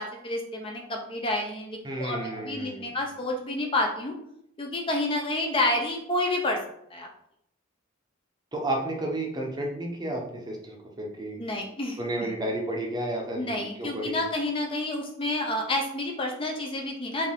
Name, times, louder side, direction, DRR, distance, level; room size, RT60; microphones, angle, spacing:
voice 1, 0.0-4.1 4.6-6.6 6.9-7.1 11.4-12.3 13.4-17.3, left 1 dB, 25° left, 1 dB, 0.6 m, -29 dB
voice 2, 1.8-2.9 8.5-11.4 12.0-14.2, right 1 dB, 20° right, 0 dB, 0.7 m, -32 dB
4.2 x 2.7 x 3.6 m, 0.72 s
head